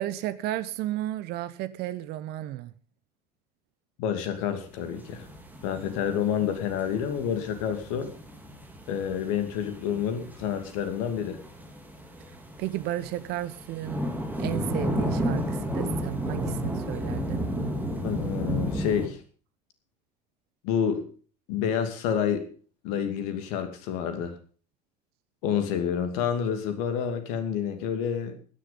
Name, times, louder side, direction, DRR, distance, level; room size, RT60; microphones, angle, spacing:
voice 1, 0.0-2.7 12.6-14.0 14.4-17.5, right 14 dB, 50° right, 15 dB, 1.0 m, -33 dB
voice 2, 4.0-5.3 5.6-8.1 8.9-11.4 18.0-19.2 20.6-21.0 21.5-22.4 22.8-24.3 25.4-28.4, left 8 dB, 60° left, 8 dB, 2.6 m, -28 dB
sound 1, 4.8-19.1, equal, 10° right, 4.2 m, -33 dB
16.0 x 10.0 x 5.3 m, 0.41 s
figure-of-eight pair, 70°, 21 cm